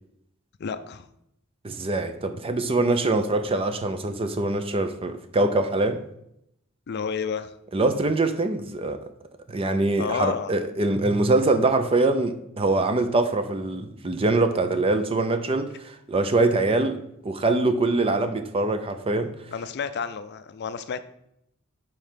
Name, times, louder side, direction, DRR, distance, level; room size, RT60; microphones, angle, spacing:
voice 1, 0.6-1.1 6.9-7.5 10.0-10.5 19.5-21.0, left 6 dB, 50° left, 12 dB, 0.4 m, -30 dB
voice 2, 1.6-6.0 7.7-9.0 9.5-17.0 17.2-19.3, right 2 dB, 25° right, 8 dB, 0.5 m, -23 dB
5.2 x 4.5 x 5.6 m, 0.77 s
head